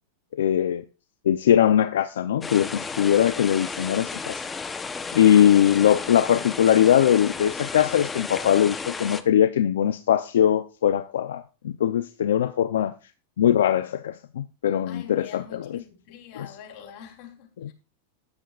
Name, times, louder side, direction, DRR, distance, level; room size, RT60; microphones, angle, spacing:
voice 1, 0.3-0.8 1.2-4.4 5.1-12.9 13.4-15.8 16.4-16.5 17.6-17.7, left 10 dB, 85° left, 0.6 m, -21 dB
sound 1, 2.4-9.2, left 4 dB, 15° left, 0.9 m, -33 dB
voice 2, 14.9-17.7, left 8 dB, 50° left, 3.6 m, -45 dB
13.5 x 10.5 x 2.5 m
hypercardioid pair, 120°, 0 cm